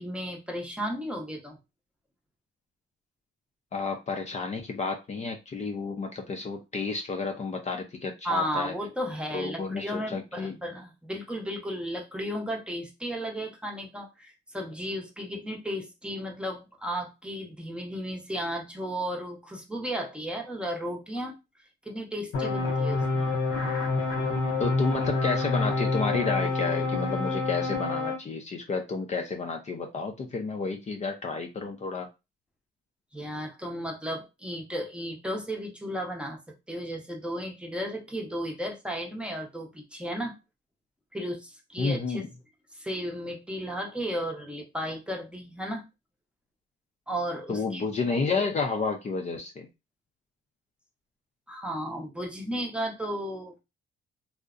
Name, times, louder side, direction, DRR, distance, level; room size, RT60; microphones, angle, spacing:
voice 1, 0.0-1.6 8.2-21.3 21.8-23.2 33.1-36.4 36.7-40.3 41.1-42.2 42.7-45.8 47.1-47.8 51.5-53.6, equal, 5° right, 1 dB, 0.7 m, -34 dB
voice 2, 3.7-8.7 9.3-10.5 24.6-32.1 41.8-42.3 47.5-49.7, left 4 dB, 35° left, 3 dB, 0.5 m, -31 dB
sound 1, 22.3-28.2, left 3 dB, 90° left, 0.6 m, -27 dB
2.5 x 2.1 x 2.4 m, 0.25 s
cardioid pair, 90°, 20 cm